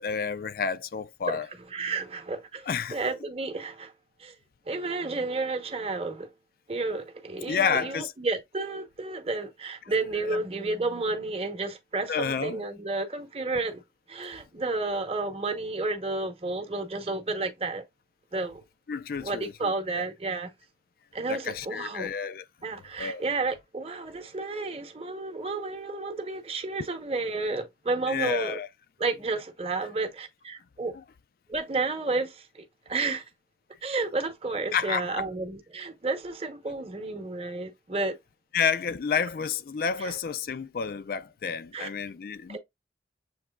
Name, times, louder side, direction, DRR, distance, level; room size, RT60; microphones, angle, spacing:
voice 1, 0.0-1.5 2.7-3.0 7.5-8.1 10.2-10.4 12.1-12.6 18.9-20.1 21.3-22.4 23.0-23.2 28.1-28.7 34.7-35.3 38.5-42.6, left 6 dB, 55° left, 0.3 m, -30 dB
voice 2, 1.7-3.9 4.2-4.4 4.7-6.3 6.7-13.8 14.1-17.8 18.3-18.6 19.2-20.5 21.1-22.1 22.6-28.6 29.0-30.9 31.5-33.2 33.8-38.2 40.0-40.1 41.7-41.9 42.5-42.6, right 3 dB, 35° right, 0.8 m, -31 dB
7.2 x 2.9 x 2.2 m
head